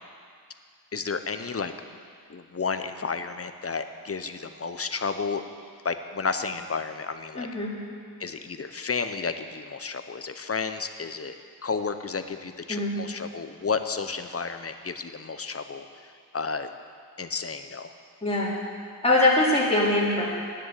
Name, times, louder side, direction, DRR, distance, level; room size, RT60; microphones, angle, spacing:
voice 1, 0.9-1.7 2.3-5.4 5.8-7.5 8.2-11.3 11.6-15.8 16.3-16.7 17.2-17.9, left 5 dB, 35° left, 9 dB, 0.7 m, -32 dB
voice 2, 7.4-7.7 12.7-12.9 18.2-18.5 19.0-20.3, left 2 dB, 15° left, -6 dB, 2.9 m, -22 dB
10.5 x 10.0 x 8.2 m, 2.1 s
wide cardioid pair, 135°, 41 cm